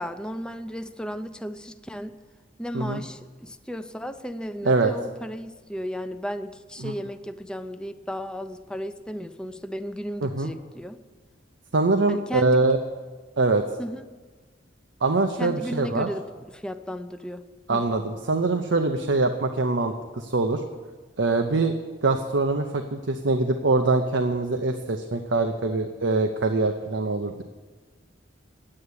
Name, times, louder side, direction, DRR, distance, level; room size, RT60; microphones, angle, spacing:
voice 1, 0.0-2.2 2.6-11.0 12.1-12.6 13.8-14.1 15.4-16.2 16.5-17.4 17.7-17.8, equal, 5° left, 8 dB, 0.5 m, -34 dB
voice 2, 11.7-12.8 13.4-13.6 15.0-16.1 17.7-20.6 21.2-21.7 22.0-27.4, right 3 dB, 75° right, 6 dB, 0.7 m, -23 dB
9.7 x 8.7 x 9.5 m, 1.4 s
head